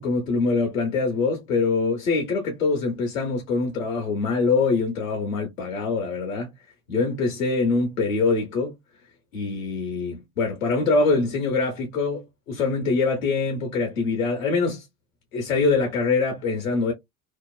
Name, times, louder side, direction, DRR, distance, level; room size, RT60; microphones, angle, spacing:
voice 1, 0.0-6.5 6.9-8.8 9.3-14.8 15.3-16.9, left 4 dB, 85° left, 0.9 m, -24 dB
2.8 x 2.0 x 2.3 m
hypercardioid pair, 80°, 39 cm